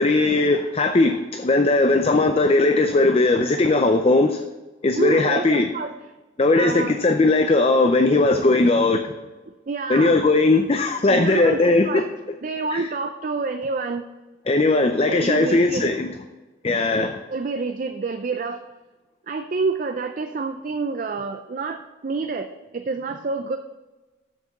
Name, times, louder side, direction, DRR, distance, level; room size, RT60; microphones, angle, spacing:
voice 1, 0.0-4.4 4.8-5.7 6.4-9.1 9.9-12.4 12.7-12.9 14.5-16.1 16.6-17.2, left 2 dB, 30° left, 6 dB, 0.5 m, -19 dB
voice 2, 5.0-5.9 6.6-6.9 8.3-8.5 9.7-10.1 11.1-12.1 12.4-14.0 15.1-15.9 17.3-18.6 19.3-23.6, right 4 dB, 45° right, 7 dB, 0.4 m, -28 dB
7.3 x 6.7 x 5.9 m, 1.2 s
head